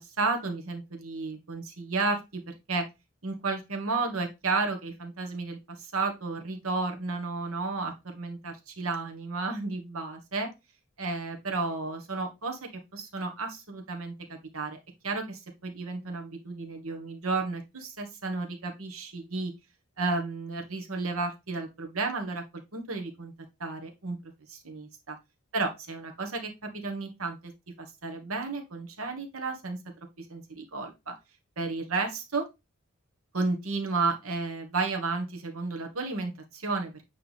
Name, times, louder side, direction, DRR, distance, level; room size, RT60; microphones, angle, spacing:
voice 1, 0.2-2.9 3.2-10.5 11.0-14.8 15.0-19.5 20.0-22.4 22.7-23.3 23.6-25.2 25.5-27.5 27.8-29.8 30.2-31.1 31.6-32.4 33.3-37.0, right 3 dB, 80° right, 3 dB, 1.6 m, -32 dB
8.9 x 3.5 x 3.5 m, 0.24 s
head